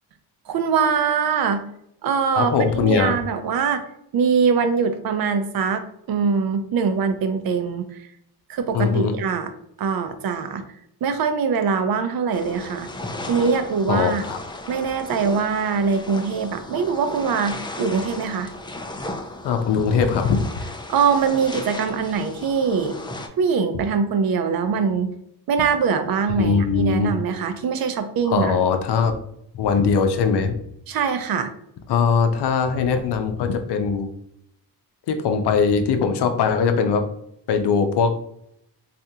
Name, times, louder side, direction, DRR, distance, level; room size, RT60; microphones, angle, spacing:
voice 1, 0.5-1.6 2.0-3.8 4.1-7.9 8.5-9.5 9.8-10.6 11.0-12.9 13.3-14.2 14.7-18.5 20.9-23.0 23.4-25.1 25.5-28.6 30.9-31.5, right 6 dB, 60° right, 8 dB, 0.6 m, -22 dB
voice 2, 2.3-3.2 8.7-9.1 13.9-14.4 19.4-20.4 26.4-27.1 28.3-29.1 29.5-30.6 31.9-34.1 35.1-37.0 37.5-38.1, left 5 dB, 75° left, 6 dB, 0.6 m, -20 dB
sound 1, 12.3-23.3, left 2 dB, 10° left, 0.3 m, -35 dB
3.5 x 2.5 x 2.7 m, 0.74 s
cardioid pair, 95°, 41 cm